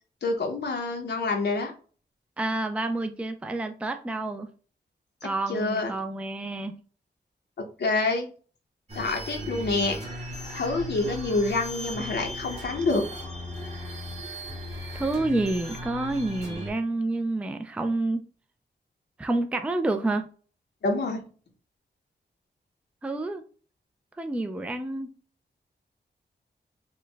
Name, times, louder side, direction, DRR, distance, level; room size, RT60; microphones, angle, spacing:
voice 1, 0.2-1.7 5.5-5.9 7.6-8.3 9.0-10.0 10.5-13.0 20.8-21.3, left 3 dB, 70° left, 0.7 m, -27 dB
voice 2, 2.4-4.5 5.2-6.7 14.9-18.2 19.2-20.3 23.0-23.4 24.2-25.1, right 2 dB, 5° right, 0.3 m, -29 dB
sound 1, 8.9-16.7, equal, 35° right, 1.5 m, -37 dB
4.4 x 2.1 x 3.3 m
wide cardioid pair, 110°, 18 cm